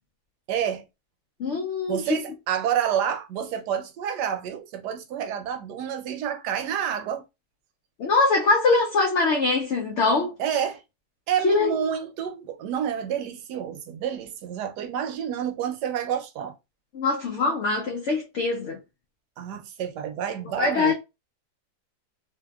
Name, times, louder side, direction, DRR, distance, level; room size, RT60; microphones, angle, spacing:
voice 1, 0.5-0.9 1.9-7.2 10.4-10.8 11.3-16.5 19.4-20.9, right 9 dB, 80° right, 1.2 m, -29 dB
voice 2, 1.4-2.2 8.0-10.3 11.4-11.7 16.9-18.8 20.6-20.9, left 3 dB, 80° left, 0.6 m, -23 dB
2.7 x 2.7 x 2.2 m
omnidirectional pair, 1.8 m